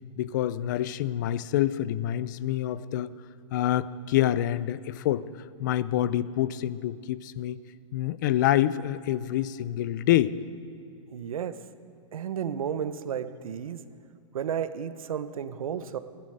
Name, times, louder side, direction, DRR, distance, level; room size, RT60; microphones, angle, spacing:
voice 1, 0.2-3.1 3.5-5.3 5.6-7.6 7.9-10.4, left 12 dB, 35° left, 18 dB, 0.4 m, -27 dB
voice 2, 11.1-11.6 12.1-13.9 14.3-16.0, right 8 dB, 80° right, 12 dB, 0.9 m, -32 dB
15.5 x 11.0 x 7.8 m, 2.4 s
hypercardioid pair, 165°, 17 cm